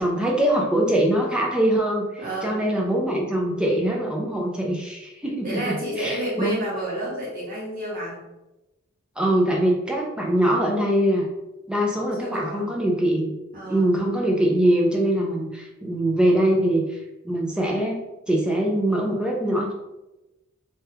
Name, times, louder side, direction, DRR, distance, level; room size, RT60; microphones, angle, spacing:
voice 1, 0.0-6.6 9.2-11.3 11.7-13.3 13.7-17.0 17.2-18.0 18.3-19.7, right 1 dB, 5° right, -1 dB, 0.4 m, -23 dB
voice 2, 2.2-2.6 5.4-8.2 10.2-10.5 12.0-12.7 13.5-13.9, right 1 dB, 40° right, -7 dB, 1.3 m, -31 dB
2.7 x 2.3 x 3.3 m, 0.99 s
head